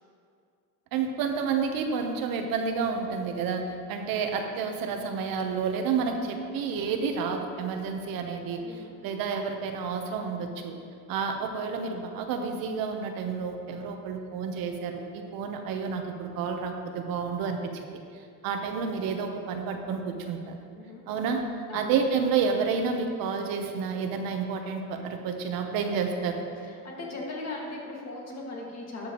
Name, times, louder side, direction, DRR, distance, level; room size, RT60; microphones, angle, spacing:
voice 1, 0.9-10.8 11.1-17.7 18.4-20.6 21.1-21.4 21.7-26.4, right 5 dB, 75° right, 4 dB, 1.0 m, -30 dB
voice 2, 8.6-9.0 20.7-21.0 21.7-22.0 26.6-29.1, left 2 dB, 45° left, -2 dB, 2.0 m, -38 dB
12.0 x 7.1 x 3.0 m, 2.3 s
cardioid pair, 120°, 35 cm